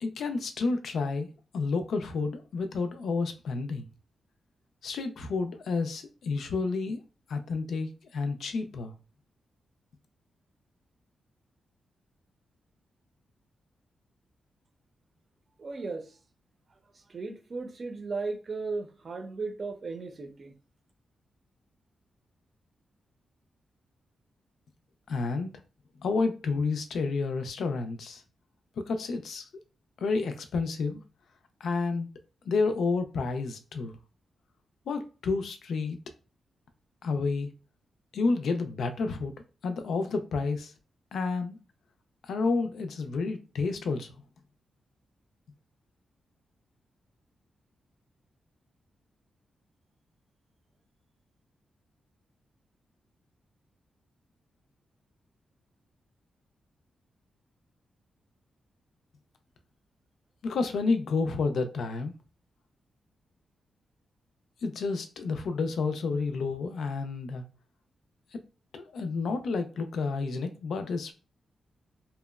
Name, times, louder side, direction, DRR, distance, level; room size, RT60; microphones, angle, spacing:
voice 1, 0.0-3.9 4.8-7.0 7.3-8.9 25.1-25.5 26.0-28.2 28.8-29.5 30.0-31.0 31.6-32.1 32.5-34.0 34.9-36.0 37.0-37.5 38.1-39.3 39.6-40.7 41.1-41.6 42.2-44.2 60.4-62.1 64.6-67.4 68.3-68.4 68.7-71.1, left 4 dB, 80° left, 0.4 m, -30 dB
voice 2, 15.6-16.1 17.1-20.5, right 3 dB, 45° right, 0.6 m, -36 dB
2.8 x 2.0 x 2.3 m
cardioid pair, 90°, 0 cm